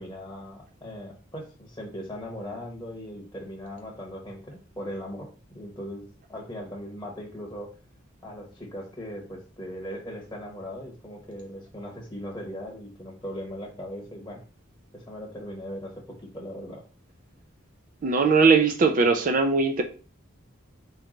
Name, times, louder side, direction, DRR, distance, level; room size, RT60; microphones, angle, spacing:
voice 1, 0.0-5.3 5.5-7.7 8.2-14.4 14.9-16.8, equal, 15° left, -1 dB, 1.0 m, -39 dB
voice 2, 18.0-19.8, right 4 dB, 40° right, 6 dB, 0.4 m, -20 dB
4.5 x 3.1 x 3.7 m, 0.38 s
head